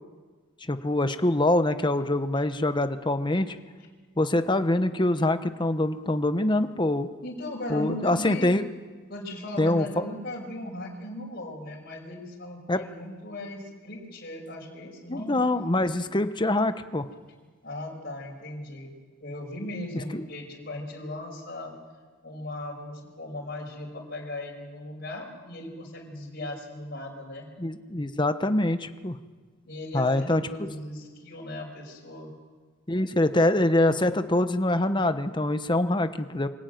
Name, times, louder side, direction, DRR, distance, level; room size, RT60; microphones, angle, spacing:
voice 1, 0.6-3.6 4.2-7.1 7.7-8.6 9.6-9.9 12.7-12.8 15.1-17.1 20.1-20.2 27.6-29.2 29.9-30.4 32.9-36.5, left 1 dB, 20° left, 10 dB, 1.1 m, -24 dB
voice 2, 7.2-8.6 9.1-15.4 17.6-18.9 19.2-21.7 22.2-27.5 29.7-32.3, left 1 dB, 50° left, -2 dB, 5.6 m, -37 dB
24.5 x 16.0 x 9.3 m, 1.4 s
head